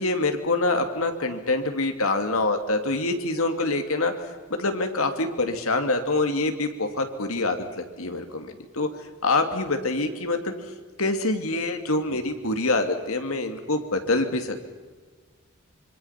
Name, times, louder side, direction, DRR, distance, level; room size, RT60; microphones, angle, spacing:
voice 1, 0.0-8.9 9.2-10.5 11.0-14.6, left 2 dB, 85° left, 6 dB, 2.6 m, -25 dB
26.0 x 25.0 x 5.9 m, 1.4 s
head